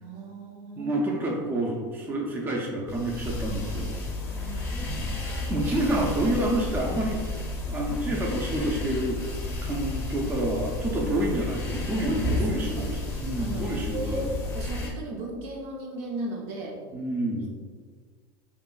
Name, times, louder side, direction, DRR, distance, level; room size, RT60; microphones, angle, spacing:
voice 1, 0.0-1.0 4.3-5.0 12.0-12.9 13.4-16.8 17.4-17.5, right 1 dB, 60° right, 0 dB, 0.6 m, -36 dB
voice 2, 0.8-4.0 4.8-7.3 7.7-9.2 9.6-14.2 16.9-17.5, right 1 dB, 20° right, -1 dB, 0.4 m, -29 dB
sound 1, 2.9-14.9, left 2 dB, 20° left, 0.6 m, -32 dB
2.8 x 2.4 x 2.2 m, 1.5 s
supercardioid pair, 125°, 11 cm